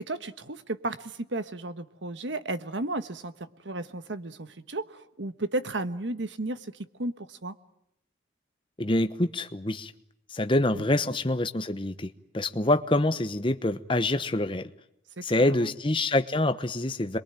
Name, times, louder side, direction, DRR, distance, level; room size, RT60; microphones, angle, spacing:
voice 1, 0.0-7.5 15.2-15.7, right 2 dB, 75° right, 11 dB, 1.3 m, -34 dB
voice 2, 8.8-9.9 10.3-14.7 15.2-17.2, left 1 dB, 25° left, 10 dB, 1.0 m, -26 dB
27.0 x 22.5 x 9.0 m, 0.77 s
head